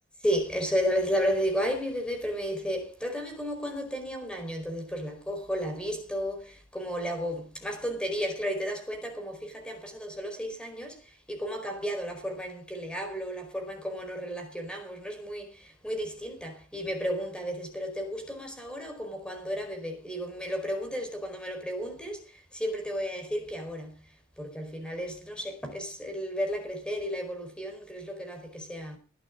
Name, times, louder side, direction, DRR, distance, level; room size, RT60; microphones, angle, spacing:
voice 1, 0.2-24.0 24.4-29.0, equal, 5° left, 4.7 m, -33 dB
20.5 x 12.5 x 3.8 m
head